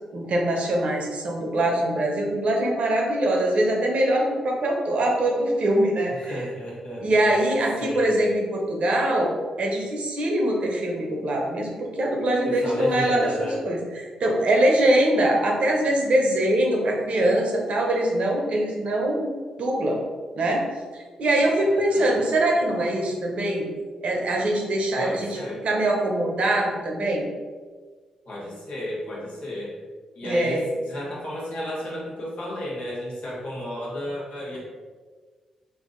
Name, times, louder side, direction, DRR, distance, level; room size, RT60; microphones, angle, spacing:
voice 1, 0.1-6.4 7.0-9.3 9.6-19.3 19.6-20.0 20.3-20.6 20.9-23.7 24.0-25.4 25.6-27.2 30.2-30.6, right 1 dB, 60° right, 0 dB, 0.8 m, -23 dB
voice 2, 6.2-7.5 7.8-8.1 12.4-13.6 21.7-22.2 25.0-25.6 28.3-29.8 30.1-30.6 30.9-34.6, equal, 60° left, -5 dB, 1.3 m, -32 dB
2.8 x 2.7 x 3.8 m, 1.5 s
hypercardioid pair, 40°, 2 cm